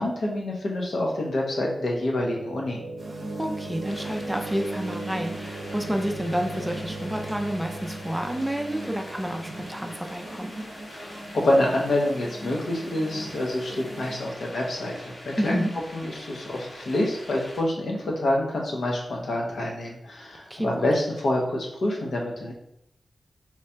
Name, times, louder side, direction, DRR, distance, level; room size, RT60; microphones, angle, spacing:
voice 1, 0.0-2.8 10.9-15.6 15.9-22.5, left 1 dB, 75° left, -1 dB, 0.9 m, -27 dB
sound 1, 0.9-12.9, right 2 dB, 90° right, 0.3 m, -39 dB
sound 2, 3.0-14.5, right 1 dB, 45° right, 0.7 m, -41 dB
voice 2, 3.4-10.5 15.4-15.7 20.5-20.9, equal, 5° right, 4 dB, 0.4 m, -29 dB
sound 3, 3.8-17.6, left 1 dB, 45° left, 1.1 m, -44 dB
3.2 x 2.8 x 3.3 m, 0.77 s
wide cardioid pair, 110°, 0 cm